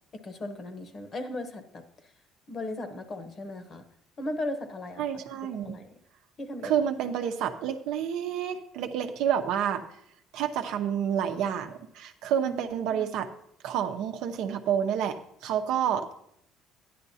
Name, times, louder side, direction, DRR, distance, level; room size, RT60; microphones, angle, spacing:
voice 1, 0.2-1.8 2.5-3.8 4.2-5.1 5.6-6.0 6.4-6.7 12.4-13.1, left 1 dB, 35° left, 8 dB, 1.0 m, -37 dB
voice 2, 5.0-5.8 6.6-9.8 10.3-13.3 13.6-15.2 15.4-16.1, right 9 dB, 75° right, 5 dB, 0.8 m, -29 dB
12.5 x 10.0 x 2.8 m, 0.74 s
cardioid pair, 130°, 0 cm